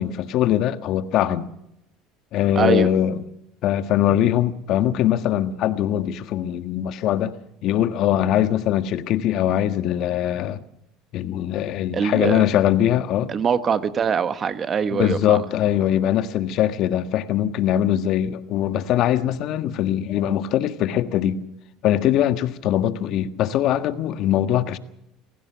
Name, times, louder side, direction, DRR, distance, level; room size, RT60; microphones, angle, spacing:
voice 1, 0.0-1.5 2.3-3.2 3.6-7.3 7.6-10.6 11.1-13.3 14.9-21.4 21.8-24.8, left 11 dB, 60° left, 1.5 m, -22 dB
voice 2, 2.5-2.9 11.9-12.4 13.3-15.4, right 6 dB, 35° right, 1.3 m, -23 dB
26.5 x 16.0 x 6.3 m
supercardioid pair, 95°, 0 cm